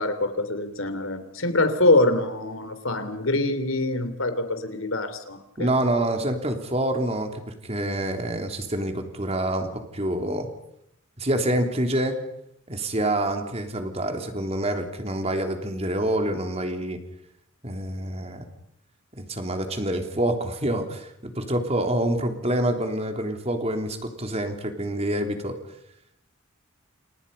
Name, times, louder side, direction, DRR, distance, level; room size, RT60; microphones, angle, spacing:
voice 1, 0.0-5.7, left 2 dB, 80° left, 10 dB, 3.2 m, -24 dB
voice 2, 5.6-10.5 11.2-12.2 12.7-17.0 17.6-18.5 19.2-25.6, right 1 dB, 30° right, 5 dB, 3.3 m, -27 dB
29.5 x 28.5 x 5.5 m, 0.77 s
head